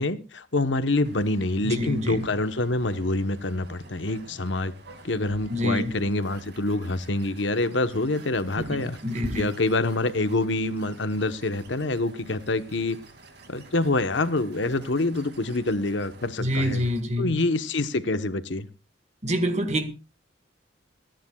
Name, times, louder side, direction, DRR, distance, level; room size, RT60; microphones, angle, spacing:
voice 1, 0.0-4.7 5.0-9.0 9.4-13.0 13.5-16.8 17.2-18.7, left 2 dB, 70° left, 1.1 m, -26 dB
sound 1, 1.0-17.0, right 1 dB, 55° right, 2.5 m, -47 dB
voice 2, 1.6-2.3 5.5-6.0 8.6-9.5 16.4-17.3 19.2-19.8, equal, 35° right, 1.8 m, -27 dB
27.0 x 10.5 x 2.4 m
head